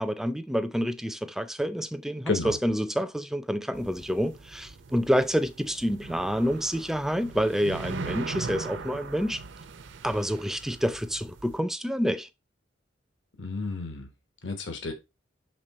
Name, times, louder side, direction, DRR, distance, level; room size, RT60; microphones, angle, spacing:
voice 1, 0.0-9.4 10.0-12.3, equal, ahead, 0.4 m, -28 dB
sound 1, 3.7-11.6, right 4 dB, 70° right, 0.6 m, -40 dB
voice 2, 13.4-14.1 14.4-14.9, left 3 dB, 80° left, 1.2 m, -31 dB
6.7 x 3.6 x 4.2 m
head